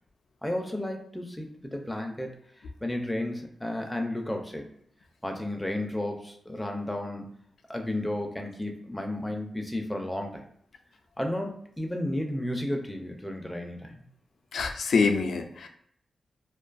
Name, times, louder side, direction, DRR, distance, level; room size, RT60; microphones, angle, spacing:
voice 1, 0.4-2.4 2.8-4.6 5.2-7.3 7.7-10.4 11.2-13.9, left 1 dB, 10° left, 3 dB, 0.4 m, -32 dB
voice 2, 14.5-15.7, left 4 dB, 75° left, 5 dB, 0.3 m, -25 dB
2.6 x 2.2 x 2.4 m, 0.67 s
wide cardioid pair, 100°, 0 cm